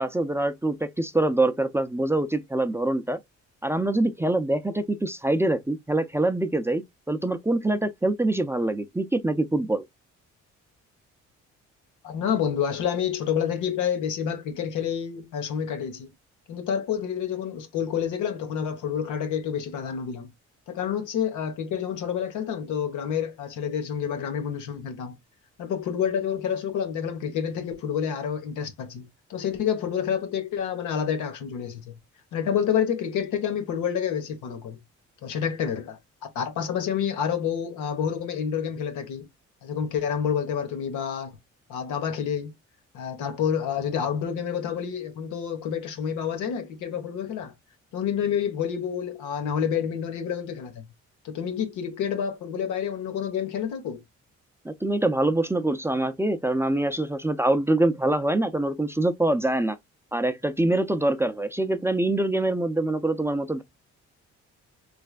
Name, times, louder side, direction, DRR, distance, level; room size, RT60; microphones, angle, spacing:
voice 1, 0.0-3.2 3.6-9.8 54.6-59.8 60.1-63.6, right 2 dB, 10° right, 0.5 m, -24 dB
voice 2, 12.0-16.1 16.5-20.3 20.7-25.2 25.6-32.0 32.3-34.8 35.2-39.3 39.6-41.3 41.7-42.5 42.9-47.5 47.9-50.8 51.2-54.0, left 8 dB, 90° left, 1.2 m, -28 dB
3.3 x 3.3 x 2.3 m
cardioid pair, 90°, 30 cm